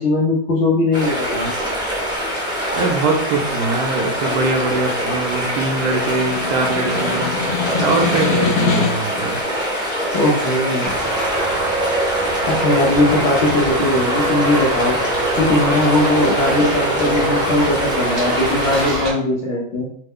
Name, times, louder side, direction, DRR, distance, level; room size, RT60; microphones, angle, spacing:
voice 1, 0.0-1.5 10.1-11.0 12.5-15.0 15.4-19.9, left 2 dB, 70° left, -6 dB, 0.6 m, -19 dB
sound 1, 0.9-19.1, equal, 5° right, 0.5 m, -24 dB
voice 2, 2.7-7.3 7.8-9.4, right 3 dB, 70° right, 1 dB, 0.9 m, -22 dB
Snare drum, 4.3-9.2, left 6 dB, 90° left, 1.3 m, -25 dB
Traffic noise roadway noise, 10.9-19.1, right 2 dB, 50° right, 0.7 m, -23 dB
3.1 x 2.1 x 3.6 m, 0.67 s
omnidirectional pair, 1.9 m